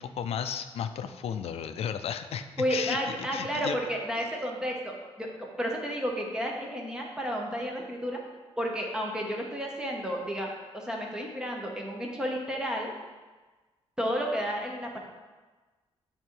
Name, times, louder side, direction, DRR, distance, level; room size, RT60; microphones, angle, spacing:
voice 1, 0.0-2.4 2.7-3.8, left 8 dB, 70° left, 9 dB, 0.4 m, -34 dB
voice 2, 2.6-8.2 8.6-10.5 10.7-12.9 14.0-15.0, equal, 5° right, 0 dB, 0.8 m, -32 dB
8.6 x 3.7 x 4.5 m, 1.3 s
wide cardioid pair, 175°, 11 cm